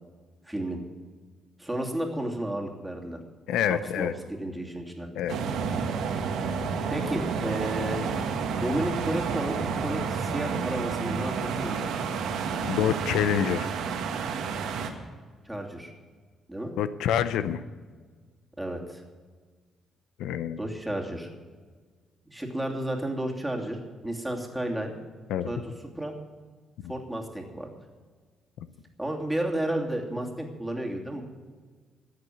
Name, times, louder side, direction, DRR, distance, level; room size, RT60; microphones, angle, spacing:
voice 1, 0.4-0.8 1.6-3.2 3.7-5.1 6.9-8.0 8.6-11.8 15.4-15.9 16.5-16.7 18.6-19.0 20.6-21.3 22.3-23.8 24.0-24.9 25.4-26.1 26.9-27.7 29.0-31.2, right 1 dB, 5° right, 0 dB, 2.8 m, -32 dB
voice 2, 3.5-4.1 5.1-5.4 12.6-13.7 16.8-17.6 20.2-20.6 25.3-25.5 26.8-26.9, left 9 dB, 90° left, 13 dB, 0.6 m, -27 dB
sound 1, 5.3-14.9, right 5 dB, 80° right, 1.7 m, -30 dB
13.5 x 8.3 x 9.4 m, 1.5 s
cardioid pair, 90°, 0 cm